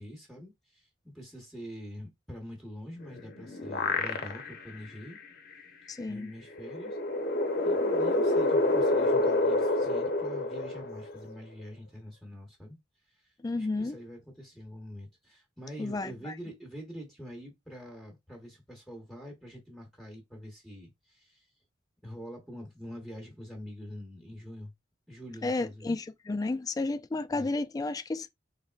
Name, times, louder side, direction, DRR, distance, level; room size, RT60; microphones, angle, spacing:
voice 1, 0.0-5.2 6.1-7.0 7.6-12.8 13.2-21.5 22.0-24.7 25.1-26.0 27.3-27.5, equal, ahead, 1.1 m, -45 dB
sound 1, 3.1-4.7 5.1-5.2 6.5-11.3, left 2 dB, 55° left, 0.7 m, -28 dB
voice 2, 5.9-6.3 13.4-14.0 15.8-16.3 25.4-28.3, left 2 dB, 20° left, 0.3 m, -32 dB
4.0 x 3.5 x 2.4 m
head